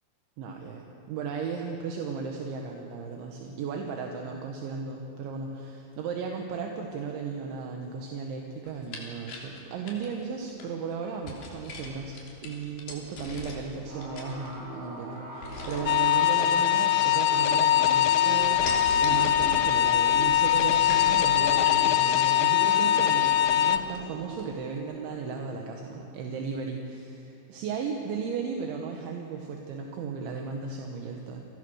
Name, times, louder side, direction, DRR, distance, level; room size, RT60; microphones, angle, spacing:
voice 1, 0.4-31.5, right 5 dB, 75° right, 2 dB, 3.7 m, -36 dB
sound 1, 8.7-10.7 11.2-13.8 14.0-14.8 15.4-16.0 16.7-17.4 17.7-18.1 18.4-21.9 22.4-22.5 22.8-22.9 23.2-24.0 24.4-24.5, left 3 dB, 55° left, 4.8 m, -41 dB
sound 2, 13.8-27.0, right 1 dB, 40° right, 8.2 m, -41 dB
sound 3, 15.9-23.8, left 12 dB, 90° left, 2.1 m, -22 dB
30.0 x 22.0 x 6.5 m, 2.9 s
omnidirectional pair, 5.5 m